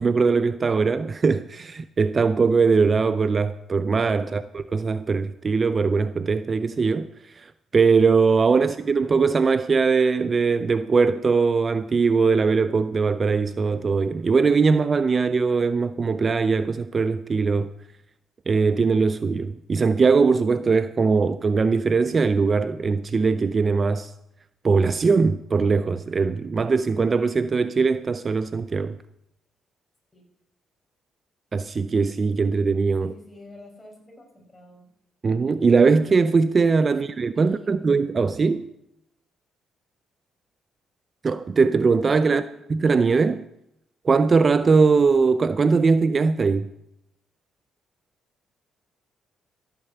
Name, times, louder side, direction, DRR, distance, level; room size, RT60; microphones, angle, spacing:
voice 1, 0.0-4.4 4.7-7.1 7.4-7.5 7.7-17.7 18.5-24.1 24.6-29.0 31.5-33.1 35.2-38.7 41.2-42.4 42.7-43.4 44.0-46.7, right 4 dB, 35° right, 0.5 m, -21 dB
voice 2, 33.0-34.9 36.9-37.0 37.3-37.8 42.2-42.5, left 1 dB, 20° left, 5.7 m, -47 dB
14.0 x 8.9 x 6.8 m
cardioid pair, 90°, 0 cm